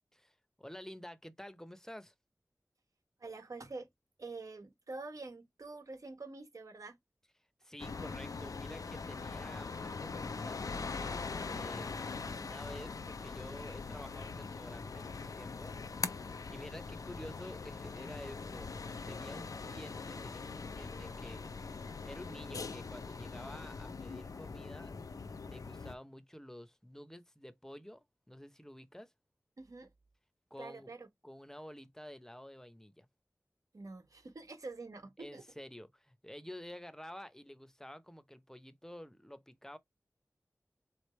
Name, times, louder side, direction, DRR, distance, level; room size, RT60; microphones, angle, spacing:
voice 1, 0.1-2.1 7.6-11.9 12.4-18.7 19.1-25.1 25.4-29.1 30.5-30.9 31.2-33.1 35.2-39.8, equal, 10° left, 0.7 m, -50 dB
voice 2, 3.2-3.9 4.2-7.0 29.6-29.9 30.6-31.1 33.7-35.4, right 3 dB, 70° right, 1.2 m, -46 dB
sound 1, 7.8-25.9, left 4 dB, 80° left, 0.5 m, -42 dB
3.9 x 3.3 x 3.1 m
cardioid pair, 40°, 6 cm